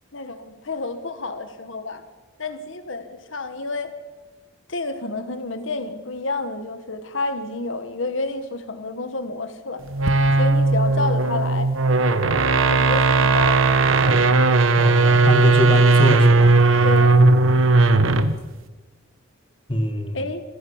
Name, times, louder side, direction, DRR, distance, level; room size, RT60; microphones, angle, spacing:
voice 1, 0.1-2.0 2.4-3.9 4.7-9.8 10.4-11.7 12.7-13.8 16.8-17.3 20.1-20.4, left 2 dB, 75° left, 9 dB, 1.5 m, -29 dB
sound 1, 9.9-18.4, right 3 dB, 85° right, 1.3 m, -17 dB
voice 2, 14.8-16.5 19.7-20.2, equal, 25° left, 6 dB, 1.9 m, -23 dB
26.0 x 15.0 x 7.3 m, 1.2 s
head